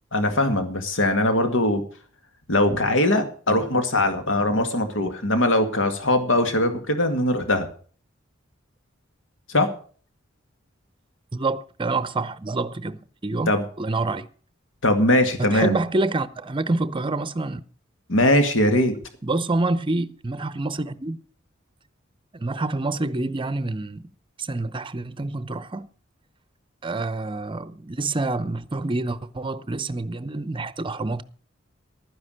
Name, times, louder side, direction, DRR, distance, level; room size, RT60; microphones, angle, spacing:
voice 1, 0.1-1.8 2.5-7.7 9.5-9.7 13.5-13.6 14.8-15.8 18.1-18.9, left 1 dB, 70° left, 2.0 m, -21 dB
voice 2, 11.3-13.5 13.8-14.3 15.4-17.6 19.2-21.2 22.3-24.1 24.4-25.9 26.8-31.2, right 2 dB, 25° right, 0.7 m, -27 dB
12.0 x 9.8 x 6.4 m
head